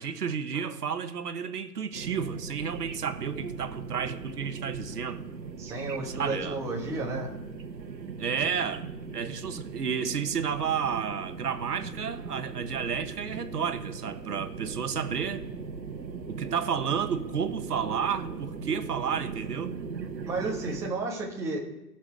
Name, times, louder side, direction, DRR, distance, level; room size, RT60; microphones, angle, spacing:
voice 1, 0.0-5.2 6.0-6.6 8.2-15.4 16.3-19.7, right 7 dB, 65° right, 1.4 m, -31 dB
sound 1, 1.9-20.9, right 5 dB, 85° right, 1.5 m, -39 dB
voice 2, 5.6-7.3 20.3-21.6, right 2 dB, 5° right, 1.3 m, -32 dB
16.0 x 6.2 x 5.0 m
hypercardioid pair, 145°, 50 cm